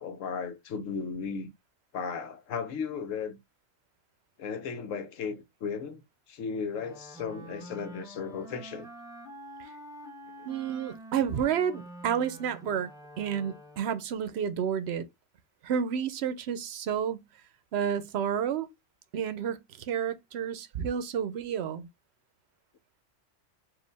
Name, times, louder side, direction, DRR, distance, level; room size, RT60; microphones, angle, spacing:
voice 1, 0.0-1.5 1.9-3.4 4.4-6.0 6.3-8.9 10.4-10.5, left 6 dB, 80° left, 1.1 m, -35 dB
Wind instrument woodwind instrument, 6.7-14.1, right 1 dB, 5° right, 0.8 m, -47 dB
voice 2, 10.5-12.9 13.2-15.1 15.6-17.2 17.7-18.7 19.1-21.9, right 8 dB, 65° right, 0.8 m, -30 dB
4.9 x 2.5 x 3.3 m
omnidirectional pair, 1.3 m